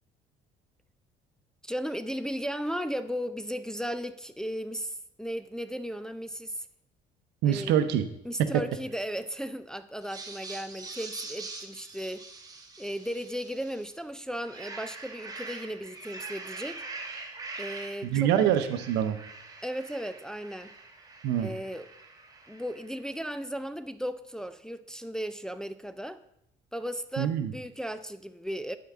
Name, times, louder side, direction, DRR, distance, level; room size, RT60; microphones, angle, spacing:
voice 1, 1.6-6.7 7.4-7.7 8.3-12.2 12.8-16.8 17.6-18.3 19.6-20.7 21.3-21.9 22.5-26.2 26.7-28.8, equal, 5° left, 0.3 m, -36 dB
voice 2, 7.4-8.0 8.4-8.6 18.0-19.2 21.2-21.5 27.2-27.5, right 10 dB, 85° right, 0.7 m, -25 dB
sound 1, 10.0-13.9 14.3-23.0, right 3 dB, 20° right, 1.1 m, -44 dB
11.5 x 4.7 x 3.5 m
cardioid pair, 110°, 17 cm